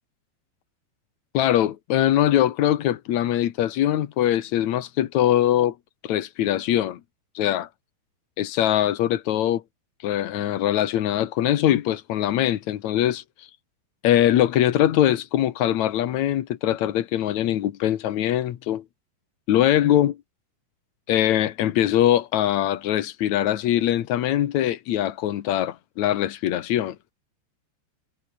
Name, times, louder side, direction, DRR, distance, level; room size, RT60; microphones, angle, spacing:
voice 1, 1.3-5.7 6.0-7.0 7.3-7.7 8.4-9.6 10.0-13.5 14.0-18.8 19.5-20.2 21.1-27.1, left 12 dB, 75° left, 1.7 m, -22 dB
omnidirectional pair, 5.1 m